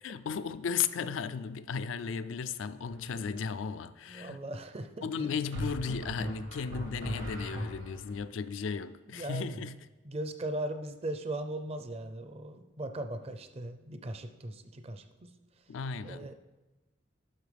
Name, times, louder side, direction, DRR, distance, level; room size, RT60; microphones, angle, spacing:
voice 1, 0.0-4.4 5.0-9.9 15.7-16.3, left 6 dB, 80° left, 0.4 m, -35 dB
sound 1, 2.9-3.3 5.5-8.2, equal, 80° right, 1.9 m, -38 dB
voice 2, 4.1-5.3 9.1-9.6 10.0-15.3 16.0-16.3, right 1 dB, 30° right, 0.5 m, -39 dB
11.0 x 5.9 x 3.4 m
head